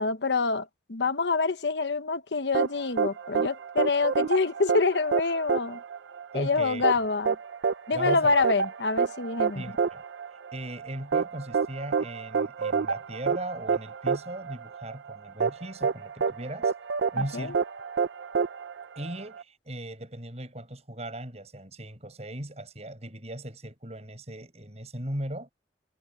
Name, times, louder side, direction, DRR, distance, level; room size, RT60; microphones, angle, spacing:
voice 1, 0.0-5.8 6.3-7.4 7.9-9.6 17.2-17.5, left 4 dB, 75° left, 1.0 m, -26 dB
sound 1, 2.5-19.4, right 5 dB, 85° right, 0.5 m, -28 dB
voice 2, 6.3-6.9 7.9-8.4 9.5-10.0 10.5-16.7 17.1-17.6 19.0-25.5, right 1 dB, 35° right, 7.5 m, -38 dB
head